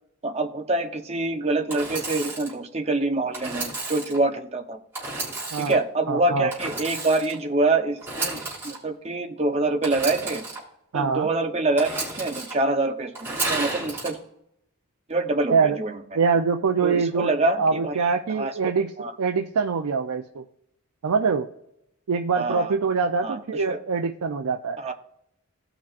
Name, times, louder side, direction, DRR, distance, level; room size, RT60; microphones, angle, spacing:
voice 1, 0.2-4.8 5.6-10.4 10.9-14.2 15.1-16.0 16.8-18.5 19.0-19.1 22.3-22.7 23.2-23.8 24.8-24.9, right 2 dB, 30° right, 5 dB, 0.7 m, -26 dB
Engine / Sawing, 1.7-2.5 3.3-4.2 4.9-5.8 6.5-7.4 8.0-8.8 9.8-10.6 11.8-12.5 13.1-14.1, right 3 dB, 10° right, 3.3 m, -32 dB
voice 2, 6.1-6.5 10.9-11.3 15.5-15.8 16.1-18.9 19.2-20.4 21.0-21.5 22.1-24.8, right 5 dB, 85° right, 5 dB, 0.5 m, -24 dB
17.0 x 6.0 x 2.4 m, 0.78 s
head